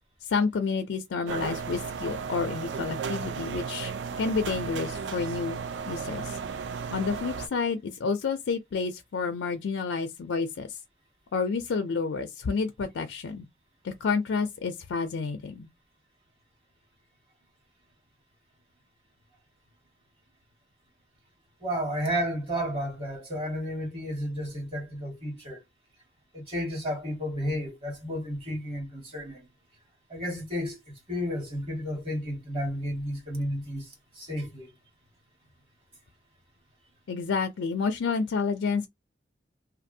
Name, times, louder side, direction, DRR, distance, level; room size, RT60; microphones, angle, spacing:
voice 1, 0.2-3.9 4.2-5.6 5.9-6.4 6.9-10.8 11.3-13.5 13.8-15.7 37.1-38.9, left 5 dB, 85° left, 0.4 m, -29 dB
sound 1, 1.2-7.5, right 6 dB, 70° right, 0.4 m, -34 dB
voice 2, 21.6-25.6 26.3-29.5 30.1-34.7, equal, 30° right, 1.3 m, -32 dB
2.6 x 2.5 x 2.6 m
head